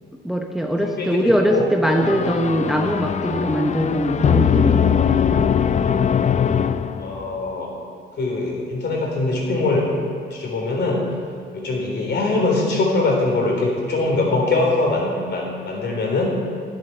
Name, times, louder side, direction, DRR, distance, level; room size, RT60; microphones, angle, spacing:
voice 1, 0.2-5.5, equal, ahead, 3 dB, 0.9 m, -22 dB
voice 2, 0.8-1.6 3.8-4.0 7.0-7.7 8.2-9.9 10.3-11.1 11.5-16.3, left 2 dB, 60° left, -1 dB, 3.7 m, -22 dB
sound 1, 1.8-7.4, left 7 dB, 35° left, 0.5 m, -20 dB
10.5 x 9.4 x 6.9 m, 2.2 s
cardioid pair, 90°, 20 cm